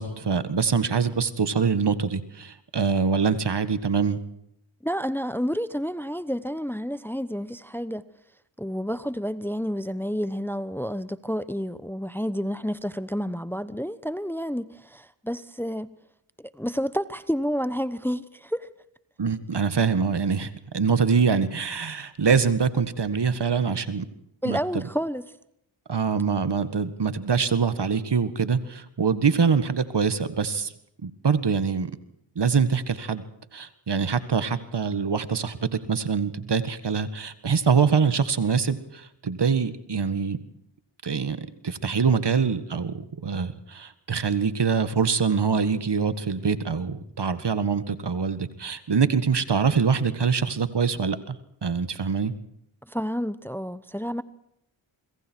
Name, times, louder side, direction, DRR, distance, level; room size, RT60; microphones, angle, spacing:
voice 1, 0.0-4.2 19.2-24.1 24.5-24.6 25.9-30.7 31.0-31.9 32.4-33.2 33.5-40.4 41.0-51.4 51.6-52.3, right 5 dB, 55° right, 1.8 m, -24 dB
voice 2, 4.8-8.0 8.6-15.9 16.5-18.7 24.4-25.2 52.8-54.2, equal, 5° left, 1.0 m, -30 dB
26.0 x 23.0 x 4.6 m
cardioid pair, 45°, 49 cm